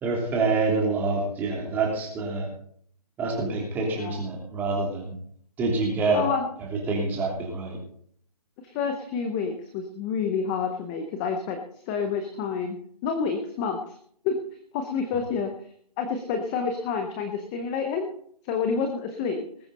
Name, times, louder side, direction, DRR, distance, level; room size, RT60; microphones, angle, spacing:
voice 1, 0.0-2.5 3.2-5.1 5.6-6.2 6.9-7.8, right 3 dB, 10° right, -1 dB, 3.0 m, -26 dB
voice 2, 6.1-6.5 8.6-11.6 11.9-12.8 13.0-14.0 14.2-14.4 14.7-15.5 16.0-18.1 18.4-19.4, left 5 dB, 10° left, 5 dB, 0.6 m, -28 dB
20.0 x 8.7 x 4.0 m, 0.62 s
hypercardioid pair, 165°, 20 cm